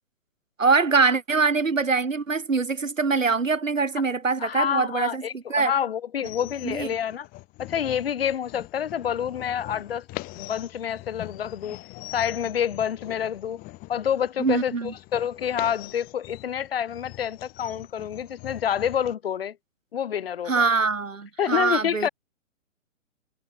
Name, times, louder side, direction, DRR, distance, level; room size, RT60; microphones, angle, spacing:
voice 1, 0.6-5.7 6.6-6.9 14.4-14.9 20.5-22.1, right 4 dB, 80° right, 1.4 m, -23 dB
voice 2, 4.4-7.3 7.6-10.0 10.3-11.8 12.1-13.6 13.9-14.7 15.1-19.6 19.9-20.6 21.4-22.1, left 9 dB, 50° left, 1.9 m, -28 dB
sound 1, 6.2-19.1, left 23 dB, 20° left, 4.1 m, -42 dB
figure-of-eight pair, 125°, 39 cm